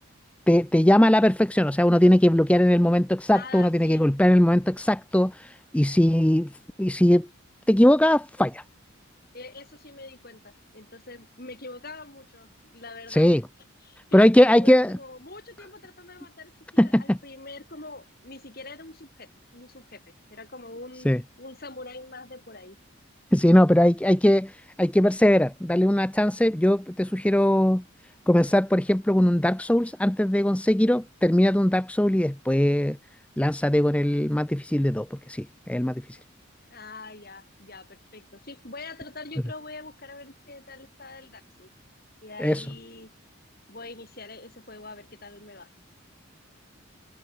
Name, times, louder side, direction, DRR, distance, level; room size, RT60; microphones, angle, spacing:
voice 1, 0.5-6.5 6.8-7.3 7.7-8.6 13.1-13.4 14.1-14.9 16.8-17.2 21.1-21.2 23.3-27.8 28.3-33.0 33.4-36.2 42.4-42.7, left 1 dB, 5° left, 0.5 m, -20 dB
voice 2, 3.3-4.0 9.3-13.3 13.8-20.0 20.3-22.8 36.7-41.7 42.2-43.1 43.7-45.7, left 3 dB, 45° left, 5.0 m, -44 dB
head